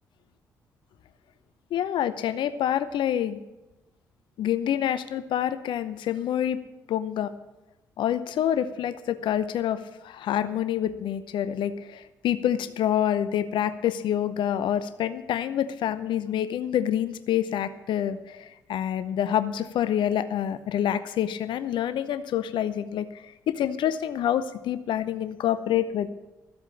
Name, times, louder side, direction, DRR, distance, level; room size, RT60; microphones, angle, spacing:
voice 1, 1.7-3.4 4.4-6.6 6.9-7.3 8.0-26.1, left 10 dB, 65° left, 13 dB, 0.7 m, -27 dB
14.0 x 8.2 x 7.3 m, 1.0 s
hypercardioid pair, 45°, 9 cm